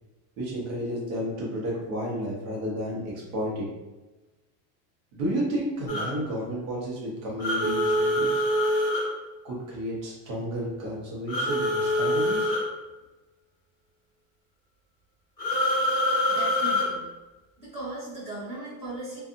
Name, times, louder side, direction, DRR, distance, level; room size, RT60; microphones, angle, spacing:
voice 1, 0.4-3.7 5.1-8.4 9.4-12.5, equal, 70° right, -4 dB, 1.0 m, -32 dB
sound 1, 5.9-6.1 7.4-9.1 11.3-12.6 15.4-16.9, left 1 dB, 5° left, 1.1 m, -25 dB
voice 2, 16.3-17.0 17.6-19.2, right 2 dB, 15° right, -13 dB, 1.2 m, -37 dB
2.5 x 2.5 x 2.5 m, 1.1 s
supercardioid pair, 175°, 42 cm